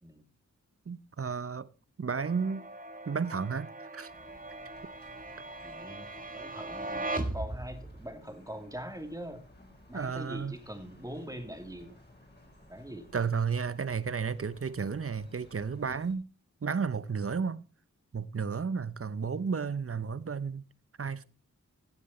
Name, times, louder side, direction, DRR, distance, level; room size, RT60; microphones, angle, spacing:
voice 1, 0.9-1.7 2.0-2.6 3.1-4.1 9.9-10.6 13.1-16.3 16.6-17.6 18.1-20.6 21.0-21.2, right 5 dB, 50° right, 0.7 m, -32 dB
sound 1, 2.2-8.1, right 2 dB, 30° right, 1.6 m, -39 dB
sound 2, 4.1-16.1, left 1 dB, 35° left, 4.9 m, -57 dB
voice 2, 5.6-6.1 6.3-9.4 9.9-12.0 12.7-13.1, equal, 10° right, 2.7 m, -42 dB
16.0 x 7.5 x 4.3 m
wide cardioid pair, 50°, 30 cm